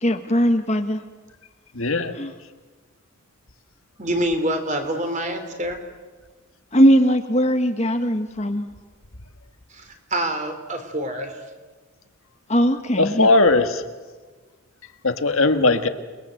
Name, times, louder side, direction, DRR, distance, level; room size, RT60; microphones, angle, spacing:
voice 1, 0.0-1.0 2.1-2.3 6.7-8.7 12.5-13.3, equal, 30° left, 6 dB, 1.3 m, -19 dB
voice 2, 1.8-2.1 13.0-13.8 15.0-15.9, left 3 dB, 70° left, 7 dB, 1.8 m, -18 dB
voice 3, 4.0-5.8 9.7-11.3, right 1 dB, 35° right, 6 dB, 3.8 m, -26 dB
29.5 x 21.5 x 7.9 m, 1.4 s
head